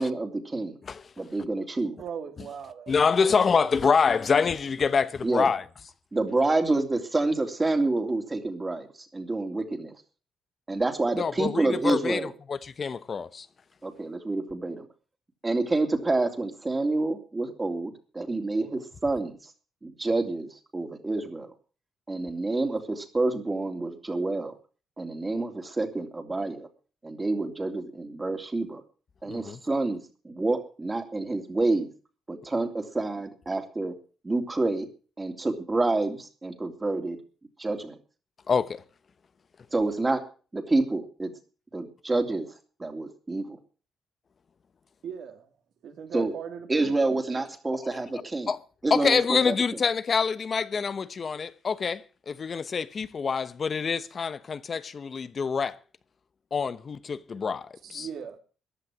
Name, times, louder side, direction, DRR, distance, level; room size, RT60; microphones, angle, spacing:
voice 1, 0.0-0.8 1.2-2.0 5.2-5.5 6.1-8.9 9.1-9.9 10.7-12.3 13.8-14.9 15.4-19.4 19.8-21.5 22.1-24.5 25.0-26.7 27.0-28.8 29.2-30.0 30.2-31.9 32.3-33.9 34.2-34.9 35.2-37.2 37.6-38.0 39.7-40.2 40.5-41.3 41.7-42.5 42.8-43.6 46.1-46.3 46.7-48.5 48.8-49.5, right 2 dB, 20° right, 2.9 m, -28 dB
voice 2, 2.0-3.8 45.0-45.5 45.8-47.5 57.8-58.4, right 7 dB, 70° right, 2.9 m, -39 dB
voice 3, 2.9-5.6 11.2-13.5 29.3-29.6 38.5-38.8 47.9-48.0 48.5-48.6 48.9-55.8 56.5-58.1, left 5 dB, 40° left, 0.9 m, -26 dB
15.0 x 10.5 x 6.2 m
cardioid pair, 90°, 0 cm